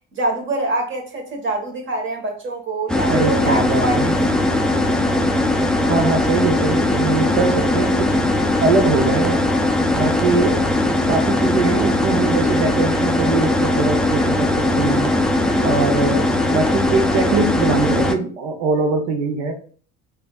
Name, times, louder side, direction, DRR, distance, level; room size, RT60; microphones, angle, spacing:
voice 1, 0.1-4.1, right 2 dB, 35° right, 1.5 m, -25 dB
sound 1, 2.9-18.2, left 1 dB, ahead, 0.4 m, -19 dB
voice 2, 3.0-4.1 5.8-8.1 8.6-9.5 9.9-10.7 11.1-15.1 15.6-19.5, right 4 dB, 80° right, 0.8 m, -22 dB
5.0 x 2.6 x 2.4 m
supercardioid pair, 85°, 32 cm